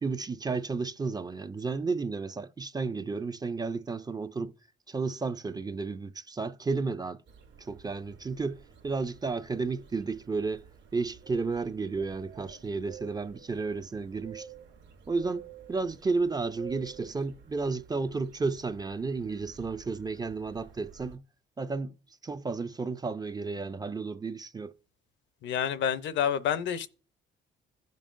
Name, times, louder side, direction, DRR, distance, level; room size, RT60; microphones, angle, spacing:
voice 1, 0.0-4.5 4.9-7.2 7.6-10.6 10.9-14.5 15.1-21.2 21.6-22.0 22.2-24.7, right 4 dB, 20° right, 0.4 m, -32 dB
sound 1, 7.3-21.2, right 7 dB, 65° right, 1.1 m, -51 dB
voice 2, 25.4-26.9, left 8 dB, 65° left, 0.6 m, -28 dB
16.0 x 5.3 x 2.5 m
cardioid pair, 90°, 20 cm